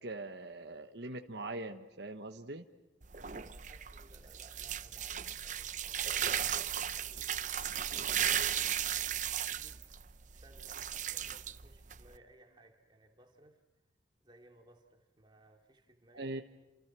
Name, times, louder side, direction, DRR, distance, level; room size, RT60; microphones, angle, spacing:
voice 1, 0.0-2.7 16.1-16.4, right 2 dB, 60° right, 5 dB, 1.2 m, -42 dB
sound 1, 3.0-12.2, right 9 dB, 40° right, 0.8 m, -36 dB
voice 2, 3.3-13.6 14.2-16.4, right 1 dB, 25° right, 3 dB, 2.9 m, -62 dB
29.0 x 28.0 x 6.2 m, 1.1 s
head